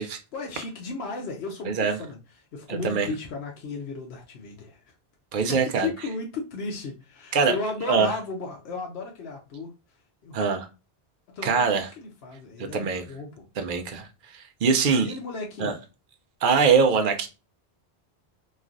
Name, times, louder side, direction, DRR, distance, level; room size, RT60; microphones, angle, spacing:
voice 1, 0.0-2.2 2.5-4.8 5.5-9.7 10.2-10.5 11.3-11.6 12.0-13.4 15.0-15.7, left 3 dB, 75° left, 0.9 m, -34 dB
voice 2, 1.6-2.0 2.7-3.1 5.3-5.9 7.3-7.5 7.9-8.1 10.3-10.6 11.4-11.9 12.7-13.0 13.6-14.1 14.3-15.2 15.6-15.7 16.4-17.3, right 5 dB, 60° right, 0.6 m, -23 dB
3.1 x 2.4 x 2.4 m
omnidirectional pair, 1.1 m